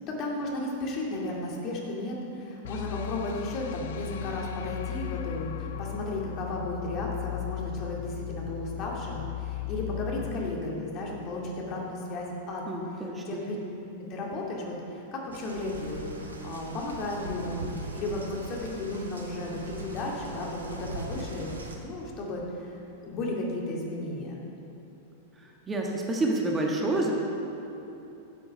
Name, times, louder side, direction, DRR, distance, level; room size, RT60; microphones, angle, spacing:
voice 1, 0.0-12.6 13.0-13.6 14.1-21.5 21.8-22.7 23.0-24.4, left 2 dB, 40° left, -2 dB, 2.3 m, -34 dB
sound 1, 2.6-11.7, left 15 dB, 60° left, 0.5 m, -37 dB
voice 2, 12.7-13.4 25.7-27.1, right 2 dB, 20° right, -1 dB, 1.4 m, -28 dB
sound 2, 15.3-21.8, right 2 dB, 80° right, 1.2 m, -40 dB
12.0 x 7.7 x 5.5 m, 3.0 s
figure-of-eight pair, 95°, 0 cm